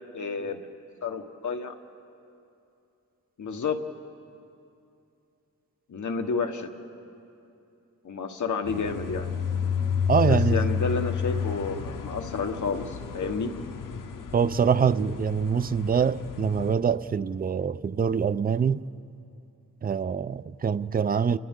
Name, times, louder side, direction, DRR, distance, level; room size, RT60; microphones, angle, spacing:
voice 1, 0.1-0.6 1.0-1.7 3.4-3.8 5.9-6.7 8.0-9.3 10.3-13.5, left 4 dB, 70° left, 1.4 m, -30 dB
sound 1, 8.6-16.7, left 6 dB, 90° left, 1.0 m, -30 dB
voice 2, 10.1-10.7 14.3-18.8 19.8-21.4, right 6 dB, 30° right, 0.4 m, -24 dB
29.5 x 29.5 x 3.7 m
wide cardioid pair, 135°, 31 cm